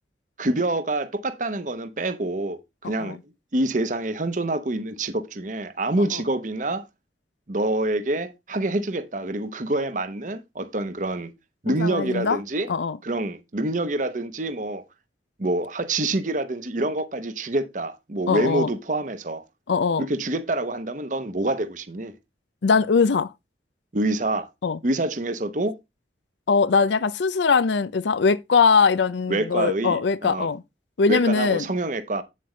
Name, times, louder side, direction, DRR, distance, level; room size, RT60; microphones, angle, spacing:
voice 1, 0.4-3.2 3.5-6.8 7.5-11.3 11.6-12.7 13.0-14.8 15.4-19.4 20.0-22.1 23.9-24.5 24.8-25.8 29.3-30.5 31.1-32.2, right 2 dB, 45° right, 0.9 m, -26 dB
voice 2, 11.7-12.4 12.7-13.0 18.3-18.7 19.7-20.0 22.6-23.3 24.6-24.8 26.5-30.6 31.0-31.6, left 5 dB, 80° left, 0.5 m, -21 dB
8.5 x 7.5 x 3.2 m
head